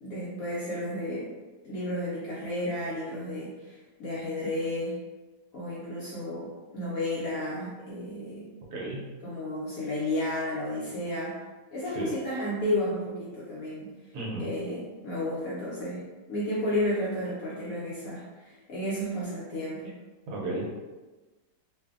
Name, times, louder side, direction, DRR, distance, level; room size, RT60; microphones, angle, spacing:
voice 1, 0.0-1.3 1.6-5.0 5.5-8.5 9.2-11.4 11.7-13.9 14.4-19.9, left 1 dB, 70° left, -7 dB, 0.8 m, -32 dB
voice 2, 8.7-9.0 11.9-12.1 14.1-14.5 20.3-20.7, right 2 dB, 70° right, -4 dB, 1.1 m, -33 dB
2.6 x 2.5 x 2.4 m, 1.2 s
omnidirectional pair, 2.0 m